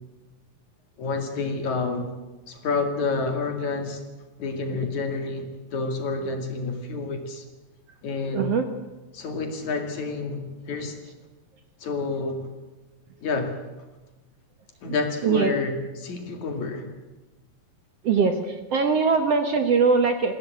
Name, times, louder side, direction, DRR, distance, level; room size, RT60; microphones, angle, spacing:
voice 1, 1.0-2.1 2.5-4.0 4.4-7.4 8.0-8.5 9.1-11.0 11.8-12.5 13.2-13.6 14.8-16.9, left 3 dB, 60° left, 6 dB, 3.6 m, -29 dB
voice 2, 8.3-8.7 14.8-14.9 15.2-15.5 18.0-20.3, right 5 dB, 55° right, 7 dB, 2.0 m, -21 dB
21.0 x 16.5 x 9.1 m, 1.1 s
omnidirectional pair, 4.0 m